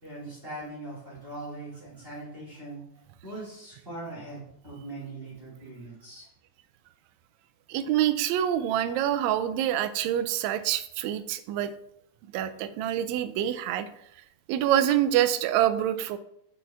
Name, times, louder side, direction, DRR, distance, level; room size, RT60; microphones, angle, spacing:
voice 1, 0.0-2.8 3.2-6.3, right 2 dB, 20° right, -6 dB, 2.4 m, -41 dB
voice 2, 7.7-11.7 12.3-13.9 14.5-16.2, right 11 dB, 80° right, 11 dB, 1.7 m, -26 dB
6.1 x 5.7 x 3.5 m, 0.73 s
omnidirectional pair, 3.6 m